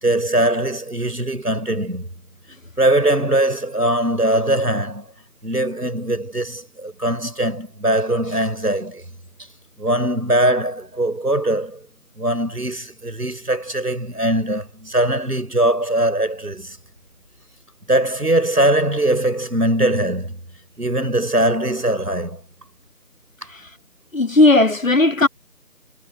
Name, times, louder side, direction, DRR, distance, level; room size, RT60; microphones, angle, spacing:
voice 1, 0.0-2.1 2.8-5.1 5.4-9.0 9.8-11.9 12.2-16.8 17.9-20.4 20.8-22.4, right 1 dB, 90° right, 4.9 m, -21 dB
voice 2, 24.1-25.3, left 2 dB, 55° left, 1.7 m, -15 dB
figure-of-eight pair, 170°, 46 cm